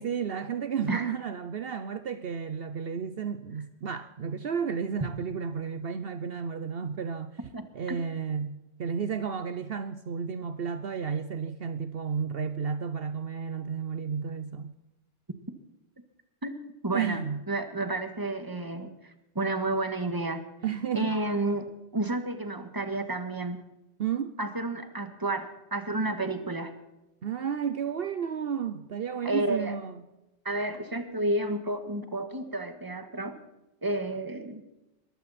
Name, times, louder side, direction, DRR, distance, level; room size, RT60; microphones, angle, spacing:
voice 1, 0.0-7.4 7.7-14.7 16.9-17.4 20.6-21.1 24.0-24.4 27.2-30.0, right 7 dB, 60° right, 1.0 m, -32 dB
voice 2, 7.5-8.0 16.4-16.5 16.8-17.2 17.5-18.9 19.4-20.4 20.9-21.7 21.9-23.6 24.4-26.7 29.3-29.8 30.5-33.4 33.8-34.6, right 2 dB, 20° right, 1.6 m, -31 dB
21.5 x 15.5 x 4.3 m
omnidirectional pair, 1.2 m